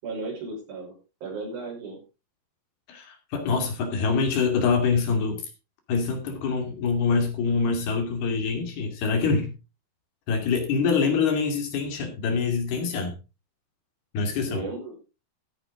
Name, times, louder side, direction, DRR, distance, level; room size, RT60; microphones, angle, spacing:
voice 1, 0.0-2.0 14.5-14.9, right 3 dB, 60° right, 0 dB, 7.1 m, -35 dB
voice 2, 2.9-5.4 5.9-9.5 10.3-13.1 14.1-14.6, left 5 dB, 70° left, 5 dB, 4.4 m, -25 dB
14.5 x 9.0 x 3.8 m, 0.29 s
omnidirectional pair, 4.7 m